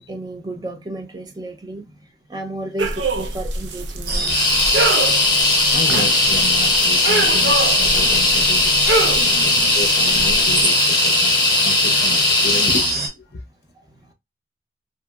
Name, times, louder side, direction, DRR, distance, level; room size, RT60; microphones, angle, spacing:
voice 1, 0.0-1.9 2.3-4.5 8.0-8.3 9.1-9.8 10.1-10.2, right 1 dB, 25° right, 0.5 m, -33 dB
sound 1, 2.8-10.6, right 3 dB, 90° right, 0.5 m, -25 dB
sound 2, 4.1-13.1, right 3 dB, 55° right, 0.9 m, -24 dB
sound 3, 4.3-13.0, left 3 dB, 25° left, 0.8 m, -18 dB
voice 2, 4.8-8.7 9.1-13.4, left 2 dB, 70° left, 0.5 m, -32 dB
2.8 x 2.7 x 2.3 m
head